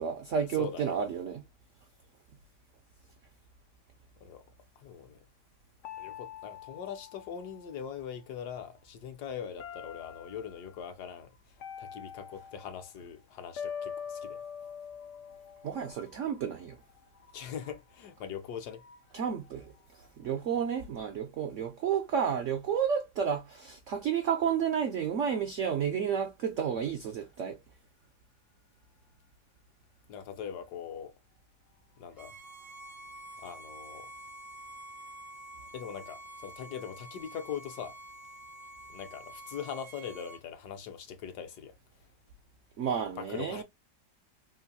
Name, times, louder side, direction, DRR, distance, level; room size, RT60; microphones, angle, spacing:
voice 1, 0.0-1.4 15.6-16.8 19.1-19.7 20.2-27.6 42.8-43.6, right 7 dB, 80° right, 0.6 m, -31 dB
voice 2, 0.6-0.9 4.2-4.4 4.8-5.2 6.0-11.3 11.8-15.7 16.2-16.3 17.1-19.0 30.1-31.1 32.0-32.3 33.4-34.1 35.7-38.0 38.9-41.8 43.2-43.6, left 8 dB, 70° left, 1.1 m, -42 dB
sound 1, 5.8-8.2 9.6-10.6 11.6-12.9 13.6-15.9, left 7 dB, 85° left, 0.6 m, -43 dB
Bowed string instrument, 32.2-40.4, right 2 dB, 35° right, 0.3 m, -48 dB
3.9 x 2.5 x 2.7 m
omnidirectional pair, 1.9 m